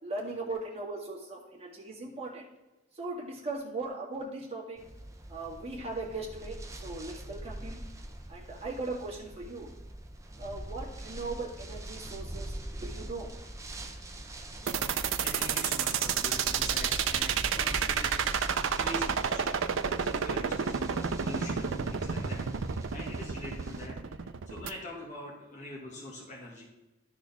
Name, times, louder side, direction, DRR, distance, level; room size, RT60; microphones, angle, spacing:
voice 1, 0.0-2.5 2.9-4.8 5.3-7.8 8.3-9.7 10.4-13.3, right 3 dB, 30° right, -4 dB, 2.0 m, -39 dB
sound 1, 4.8-23.9, right 1 dB, 15° right, 0.7 m, -42 dB
sound 2, 14.7-24.7, right 7 dB, 80° right, 0.5 m, -30 dB
voice 2, 14.9-18.3 18.7-26.7, left 1 dB, 40° left, -4 dB, 1.6 m, -44 dB
13.0 x 4.3 x 3.5 m, 1.0 s
head